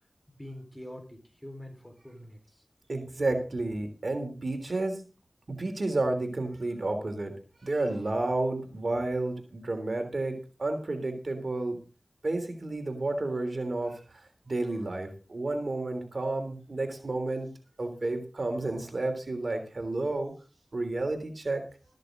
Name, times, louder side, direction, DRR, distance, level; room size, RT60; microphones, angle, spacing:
voice 1, 0.4-2.4, left 1 dB, 15° left, 5 dB, 4.5 m, -44 dB
voice 2, 2.9-5.1 5.5-7.4 7.6-11.8 12.2-17.5 17.8-20.3 20.7-21.6, right 2 dB, 70° right, 6 dB, 3.3 m, -31 dB
14.0 x 13.0 x 3.9 m, 0.32 s
wide cardioid pair, 40°, 0 cm